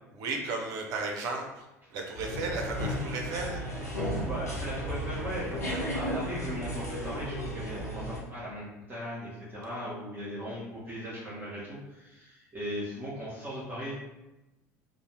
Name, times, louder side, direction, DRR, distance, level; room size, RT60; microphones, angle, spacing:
voice 1, 0.2-1.7 1.9-3.6, right 3 dB, 45° right, 1 dB, 0.5 m, -34 dB
sound 1, 2.1-8.2, equal, 85° left, 0.6 m, -34 dB
voice 2, 4.2-13.9, equal, 20° right, -8 dB, 1.0 m, -38 dB
2.6 x 2.0 x 2.9 m, 1.0 s
figure-of-eight pair, 70°, 9 cm